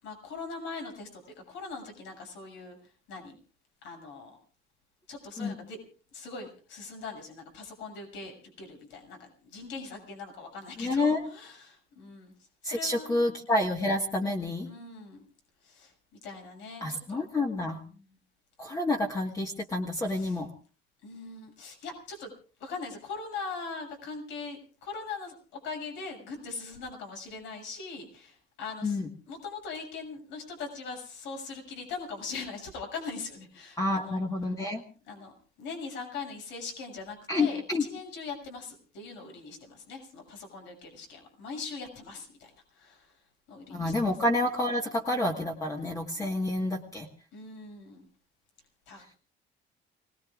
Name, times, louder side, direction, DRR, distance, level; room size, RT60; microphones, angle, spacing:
voice 1, 0.0-3.4 3.8-4.4 5.1-5.8 6.1-12.3 12.6-13.3 14.6-15.2 15.6-15.9 16.2-17.2 17.9-18.1 20.0-20.4 21.0-22.3 22.6-29.0 29.3-34.2 35.1-35.3 35.6-43.1 43.5-44.1 47.3-48.0 48.9-49.2, left 4 dB, 70° left, 3 dB, 7.0 m, -41 dB
voice 2, 10.8-11.2 12.6-14.7 16.8-17.8 18.6-20.5 28.8-29.1 33.8-34.8 37.3-37.8 43.7-47.1, left 2 dB, 15° left, 1 dB, 1.6 m, -29 dB
29.5 x 19.5 x 2.5 m, 0.38 s
cardioid pair, 170°, 20 cm